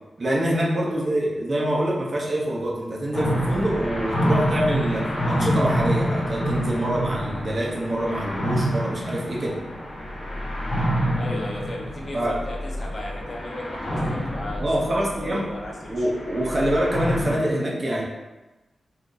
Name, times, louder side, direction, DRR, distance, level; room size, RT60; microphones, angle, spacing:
voice 1, 0.2-9.6 12.1-12.4 14.6-15.4 15.9-18.0, right 1 dB, 35° right, -3 dB, 0.7 m, -25 dB
sound 1, 3.1-17.4, equal, 55° left, 1.0 m, -27 dB
voice 2, 11.2-14.6 14.9-16.1, left 1 dB, 40° left, -2 dB, 0.6 m, -36 dB
2.7 x 2.5 x 3.7 m, 1.1 s
wide cardioid pair, 150°, 0 cm